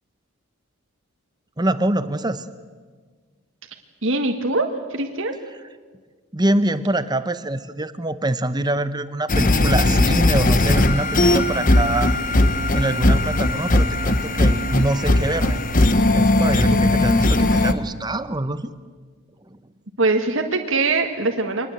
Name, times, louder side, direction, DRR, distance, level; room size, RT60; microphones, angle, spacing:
voice 1, 1.6-2.5 6.3-12.2 12.7-15.6 16.1-18.7 19.5-19.6, right 1 dB, 20° right, 12 dB, 0.8 m, -24 dB
voice 2, 4.0-5.3 20.0-21.7, right 3 dB, 65° right, 4 dB, 1.6 m, -22 dB
sound 1, 9.3-17.7, left 1 dB, 40° left, 1.1 m, -18 dB
24.5 x 20.0 x 8.0 m, 1.5 s
head